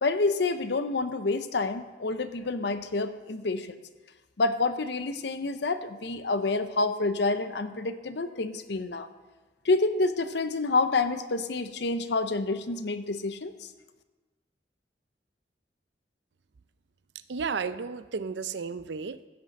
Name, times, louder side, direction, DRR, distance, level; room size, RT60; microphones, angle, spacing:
voice 1, 0.0-3.8 4.4-9.1 9.6-13.7, left 3 dB, 65° left, 11 dB, 0.7 m, -28 dB
voice 2, 17.3-19.3, right 5 dB, 70° right, 14 dB, 0.5 m, -33 dB
15.5 x 7.6 x 5.3 m, 1.2 s
head